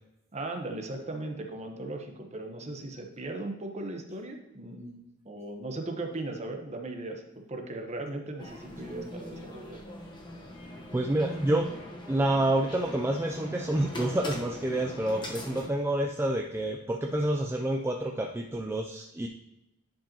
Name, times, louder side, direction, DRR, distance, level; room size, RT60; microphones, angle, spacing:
voice 1, 0.3-9.8, right 2 dB, 30° right, 4 dB, 0.9 m, -38 dB
sound 1, 8.4-15.7, left 1 dB, 20° left, 1.0 m, -41 dB
voice 2, 10.9-11.7 12.1-19.3, right 1 dB, 10° right, 2 dB, 0.3 m, -28 dB
10.0 x 5.2 x 2.9 m, 0.93 s
head